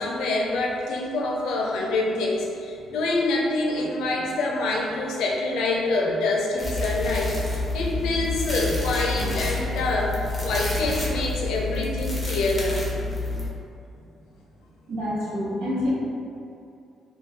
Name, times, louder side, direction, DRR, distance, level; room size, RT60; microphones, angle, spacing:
voice 1, 0.0-7.4 7.7-12.8, left 2 dB, 85° left, -2 dB, 0.5 m, -26 dB
sound 1, 6.6-13.5, left 2 dB, 10° left, 0.6 m, -28 dB
voice 2, 14.9-15.9, left 1 dB, 80° right, -7 dB, 0.9 m, -27 dB
2.4 x 2.2 x 3.3 m, 2.5 s
cardioid pair, 90°, 0 cm